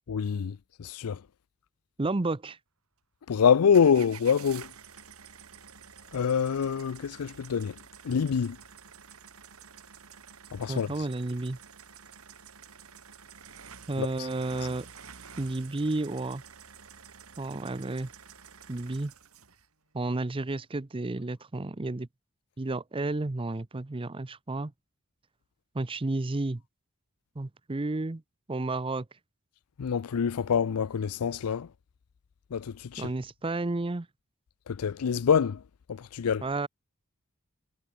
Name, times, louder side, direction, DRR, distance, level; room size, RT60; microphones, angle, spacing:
voice 1, 0.1-1.2 3.3-4.7 6.1-7.7 8.0-8.6 10.5-10.9 14.0-14.3 29.8-31.7 32.5-33.1 34.7-35.6 35.9-36.4, left 7 dB, 85° left, 0.5 m, -26 dB
voice 2, 2.0-2.6 10.7-11.6 13.9-14.9 15.4-16.4 17.4-18.1 18.7-19.1 19.9-22.1 22.6-24.7 25.7-26.6 27.4-28.2 28.5-29.1 33.0-34.1 36.4-36.7, right 2 dB, 25° right, 0.6 m, -31 dB
sound 1, 3.7-19.7, right 7 dB, 75° right, 3.7 m, -50 dB
head